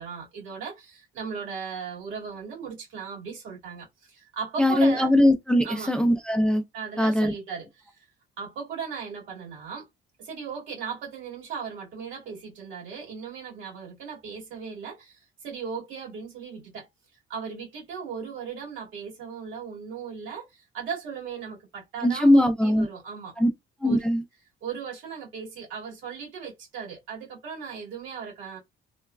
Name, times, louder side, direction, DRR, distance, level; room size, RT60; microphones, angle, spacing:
voice 1, 0.0-5.1 5.6-5.9 6.7-8.1 8.4-9.9 10.2-16.9 17.3-23.3 23.8-24.0 24.6-28.6, right 6 dB, 80° right, 1.9 m, -37 dB
voice 2, 4.6-6.6 7.0-7.3 22.0-22.9 23.4-23.5 23.8-24.2, left 1 dB, 5° left, 0.3 m, -20 dB
3.1 x 2.2 x 2.2 m
cardioid pair, 140°, 20 cm